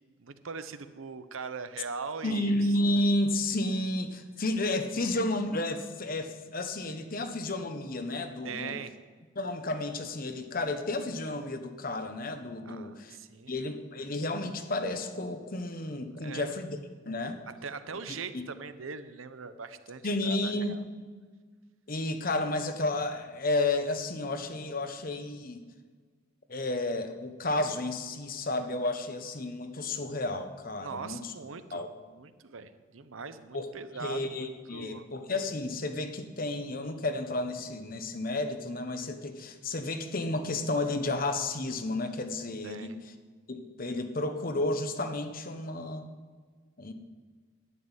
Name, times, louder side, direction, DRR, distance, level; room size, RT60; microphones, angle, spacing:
voice 1, 0.2-2.5 8.4-9.0 12.6-13.5 16.2-16.6 17.5-20.8 30.8-35.0 42.6-43.0, right 5 dB, 85° right, 11 dB, 0.8 m, -41 dB
voice 2, 2.2-8.8 9.4-13.2 13.5-16.8 17.1-17.4 18.3-18.4 20.0-20.8 21.9-25.6 26.5-31.3 31.7-31.9 33.5-33.7 34.0-43.0 43.5-46.1 46.8-46.9, left 2 dB, 45° left, 8 dB, 1.0 m, -32 dB
11.0 x 7.7 x 9.7 m, 1.5 s
head